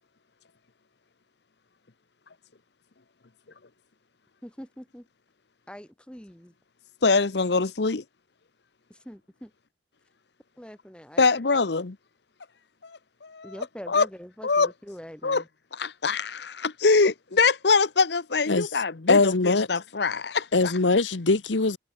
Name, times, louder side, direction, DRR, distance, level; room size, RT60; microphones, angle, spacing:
voice 1, 4.4-5.0 5.7-6.5 9.0-9.5 10.6-11.2 13.4-15.4, equal, 5° left, 1.6 m, -43 dB
voice 2, 7.0-8.0 11.2-12.0 12.8-14.1 14.4-14.7 15.2-15.4 15.7-20.7, left 4 dB, 65° left, 0.9 m, -24 dB
voice 3, 19.1-19.7 20.5-21.8, left 3 dB, 80° left, 1.2 m, -21 dB
head